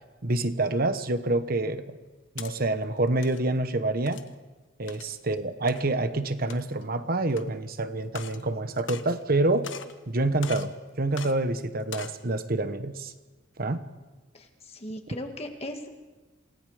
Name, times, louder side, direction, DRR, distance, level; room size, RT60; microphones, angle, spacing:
voice 1, 0.2-2.0 2.3-4.2 4.8-9.7 10.1-13.1 13.6-13.8, right 2 dB, 50° right, 10 dB, 1.2 m, -27 dB
sound 1, 2.0-2.5 3.1-3.4 4.1-4.3 4.9-5.1 5.7-5.8 6.4-6.8 7.3-7.4 8.1-8.4 8.8-9.4 9.6-10.0 10.4-10.7 11.1-11.3 11.8-12.2, left 7 dB, 80° left, 1.1 m, -41 dB
voice 2, 14.3-15.9, left 1 dB, 35° left, 4 dB, 2.1 m, -38 dB
28.0 x 18.5 x 5.1 m, 1.2 s
head